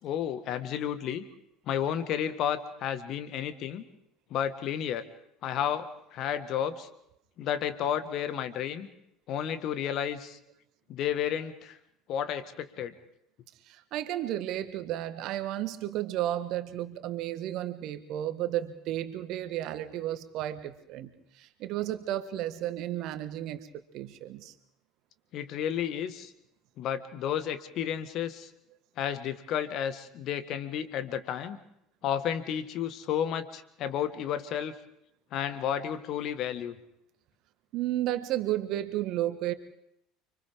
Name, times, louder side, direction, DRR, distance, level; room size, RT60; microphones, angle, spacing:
voice 1, 0.0-1.2 1.7-3.8 4.3-5.0 5.4-6.9 7.4-8.9 9.3-10.4 10.9-11.8 12.1-12.9 25.3-26.3 26.8-28.5 29.0-31.6 32.0-34.7 35.3-36.8, left 9 dB, 50° left, 11 dB, 1.6 m, -32 dB
voice 2, 13.7-23.7 23.9-24.5 37.7-39.5, right 13 dB, 50° right, 10 dB, 1.6 m, -33 dB
30.0 x 25.0 x 3.7 m, 0.77 s
figure-of-eight pair, 65°, 0 cm